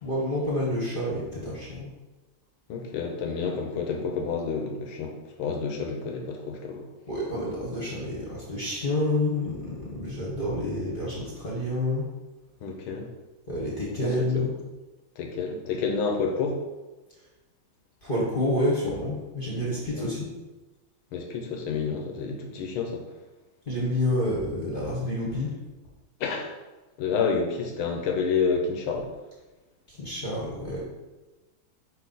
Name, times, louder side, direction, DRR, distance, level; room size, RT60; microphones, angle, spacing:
voice 1, 0.0-1.9 7.1-12.0 13.5-14.5 18.0-20.3 23.6-25.6 29.9-30.8, left 1 dB, 30° left, -6 dB, 1.3 m, -28 dB
voice 2, 2.7-6.9 12.6-13.1 14.0-14.5 15.2-16.6 20.0-20.1 21.1-23.0 26.2-26.5 27.0-29.1, left 5 dB, 85° left, 2 dB, 1.7 m, -29 dB
5.0 x 4.6 x 4.1 m, 1.1 s
omnidirectional pair, 2.2 m